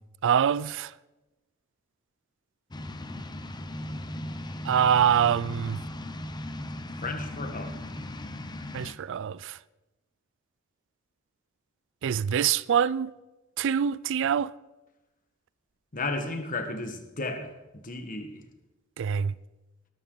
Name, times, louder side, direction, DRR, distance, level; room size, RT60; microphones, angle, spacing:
voice 1, 0.2-0.9 4.6-5.8 8.7-9.6 12.0-13.1 13.6-14.5 19.0-19.4, right 8 dB, 60° right, 0.4 m, -25 dB
sound 1, 2.7-8.9, left 1 dB, 20° left, 0.8 m, -37 dB
voice 2, 7.0-7.8 15.9-18.4, left 2 dB, 40° left, 1.5 m, -34 dB
19.5 x 12.5 x 3.9 m
head